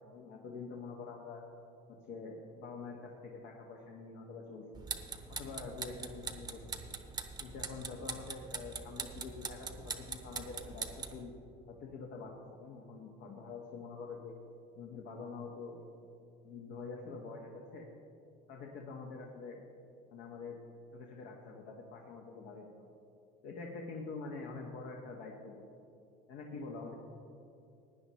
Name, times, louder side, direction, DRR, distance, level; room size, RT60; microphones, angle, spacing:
voice 1, 0.0-1.4 1.9-4.8 5.3-6.6 7.4-11.3 11.7-12.3 12.6-14.3 14.7-15.8 16.4-17.9 18.5-19.6 20.1-20.6 20.9-22.9 23.4-25.6 26.3-27.0, left 4 dB, 60° left, 0 dB, 1.3 m, -46 dB
sound 1, 4.7-11.2, right 4 dB, 20° right, 0.8 m, -43 dB
16.0 x 9.9 x 3.1 m, 2.6 s
supercardioid pair, 110°, 19 cm